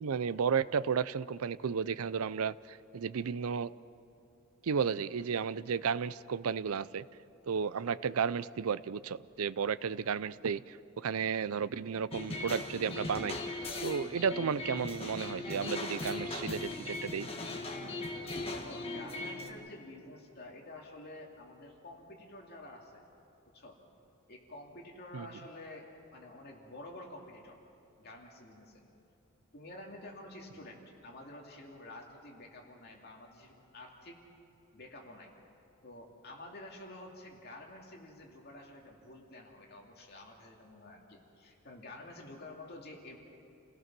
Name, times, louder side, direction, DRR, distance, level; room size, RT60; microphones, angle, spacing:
voice 1, 0.0-3.7 4.6-7.1 7.5-13.5 13.8-17.3 25.1-25.3, right 6 dB, 85° right, 17 dB, 0.5 m, -33 dB
sound 1, 12.1-19.5, left 2 dB, 25° left, 1.6 m, -39 dB
voice 2, 18.5-23.0 23.5-23.8 24.3-27.6 28.0-28.8 29.5-34.2 34.7-35.3 35.8-43.2, left 1 dB, 50° left, 0 dB, 2.6 m, -49 dB
29.0 x 17.5 x 6.1 m, 2.9 s
head